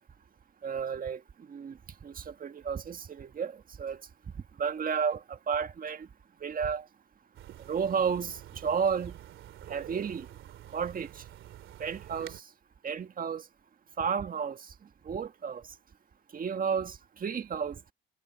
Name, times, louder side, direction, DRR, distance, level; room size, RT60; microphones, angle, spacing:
voice 1, 0.6-1.2 1.5-4.0 4.6-6.1 6.4-6.8 7.6-9.2 9.7-10.3 10.7-11.2 11.8-12.4 12.8-13.4 14.0-14.6 15.0-15.6 16.3-17.8, right 6 dB, 45° right, 1.7 m, -32 dB
sound 1, 7.3-12.4, right 12 dB, 80° right, 2.9 m, -48 dB
cardioid pair, 90°, 20 cm